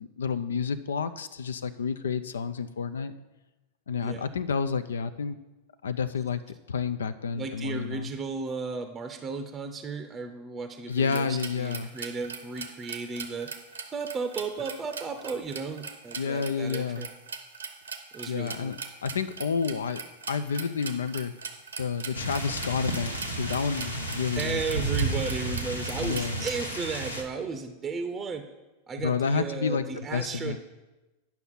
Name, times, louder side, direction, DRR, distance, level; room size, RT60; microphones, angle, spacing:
voice 1, 0.0-3.1 3.9-5.4 5.8-6.4 6.7-8.1 10.9-11.9 16.2-17.1 18.3-20.0 20.3-21.3 21.8-24.9 26.0-26.5 29.0-30.6, left 5 dB, 65° left, 12 dB, 0.4 m, -30 dB
voice 2, 7.3-13.5 13.9-17.1 18.1-18.7 24.4-28.4 28.9-30.6, right 4 dB, 20° right, 7 dB, 0.6 m, -34 dB
sound 1, 10.9-26.6, right 5 dB, 70° right, 0.8 m, -41 dB
sound 2, 22.1-27.2, right 2 dB, 90° left, 1.0 m, -32 dB
9.1 x 5.9 x 5.7 m, 1.1 s
figure-of-eight pair, 90°, 0 cm